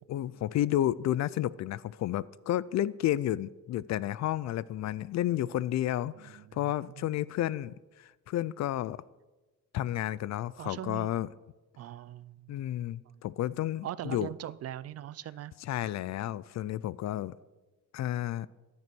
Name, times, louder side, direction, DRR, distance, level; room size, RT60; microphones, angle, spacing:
voice 1, 0.1-9.0 9.7-11.3 12.5-14.3 15.6-17.4 17.9-18.5, left 13 dB, 50° left, 20 dB, 0.4 m, -31 dB
voice 2, 6.1-7.2 10.6-11.1 11.8-12.5 13.8-15.5, right 12 dB, 45° right, 19 dB, 0.4 m, -41 dB
14.0 x 12.5 x 6.1 m, 1.2 s
cardioid pair, 170°, 35 cm